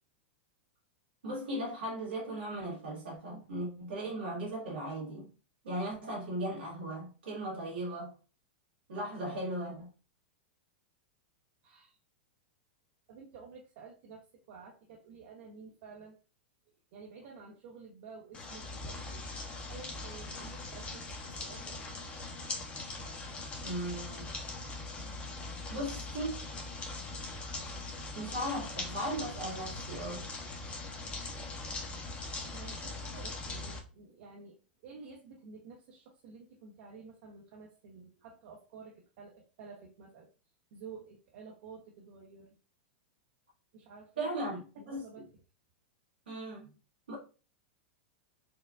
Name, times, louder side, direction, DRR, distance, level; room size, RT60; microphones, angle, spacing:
voice 1, 1.2-5.3 5.6-8.1 8.9-9.9 23.6-24.3 25.7-26.4 28.1-30.3 44.2-45.1 46.3-46.7 47.1-47.2, right 1 dB, 90° right, 1.6 m, -37 dB
voice 2, 11.6-12.0 13.1-16.2 16.9-19.2 19.7-21.1 21.4-21.8 32.4-34.6 34.8-40.3 40.7-42.6 43.7-44.6 44.8-45.3, right 5 dB, 60° right, 0.7 m, -51 dB
sound 1, 18.3-33.8, left 2 dB, 20° left, 0.8 m, -41 dB
4.4 x 2.2 x 2.5 m
hypercardioid pair, 105°, 5 cm